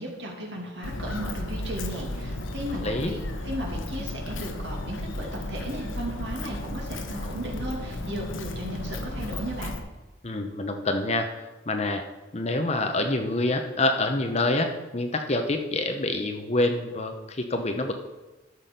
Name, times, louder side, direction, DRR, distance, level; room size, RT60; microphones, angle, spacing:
voice 1, 0.0-9.7, right 1 dB, 60° right, -1 dB, 2.4 m, -35 dB
Walk footsteps, 0.8-9.8, left 1 dB, 80° left, 1.0 m, -34 dB
voice 2, 2.8-3.1 10.2-11.3 11.7-12.0 12.3-17.9, left 2 dB, 35° left, 6 dB, 0.8 m, -26 dB
12.5 x 6.1 x 5.3 m, 1.1 s
head